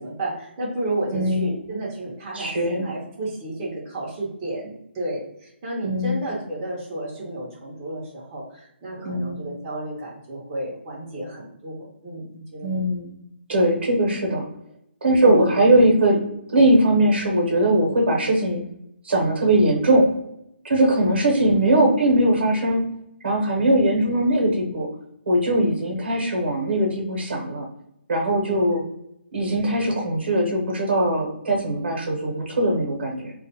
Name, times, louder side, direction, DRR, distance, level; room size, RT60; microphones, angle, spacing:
voice 1, 0.0-12.8 15.2-15.5 25.6-25.7 28.4-28.6, right 1 dB, 20° right, -6 dB, 0.6 m, -32 dB
voice 2, 1.1-1.5 2.3-2.9 5.8-6.3 9.0-9.4 12.6-13.2 13.5-14.4 15.0-16.2 16.5-18.6 19.0-20.0 20.6-22.8 23.2-24.9 25.3-27.6 28.1-28.8 29.3-33.3, right 1 dB, 65° right, 1 dB, 0.8 m, -20 dB
2.3 x 2.2 x 2.7 m, 0.79 s
hypercardioid pair, 165°, 6 cm